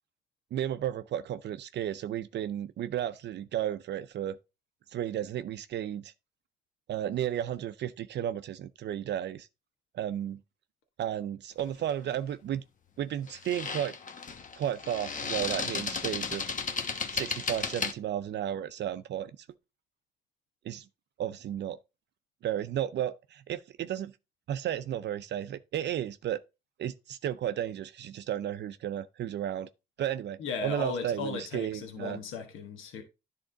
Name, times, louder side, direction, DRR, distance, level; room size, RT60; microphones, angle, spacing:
voice 1, 0.5-4.4 4.9-6.1 6.9-9.5 9.9-10.4 11.0-12.6 13.0-13.9 14.6-16.5 17.1-19.3 20.6-20.9 21.2-21.8 22.4-24.1 24.5-26.4 26.8-29.7 30.0-32.2, right 11 dB, 60° right, 0.5 m, -33 dB
sound 1, 11.6-11.8 13.3-17.9, left 5 dB, 40° left, 1.0 m, -34 dB
voice 2, 30.4-33.0, left 5 dB, 85° left, 1.4 m, -36 dB
10.0 x 3.6 x 3.8 m
cardioid pair, 90°, 20 cm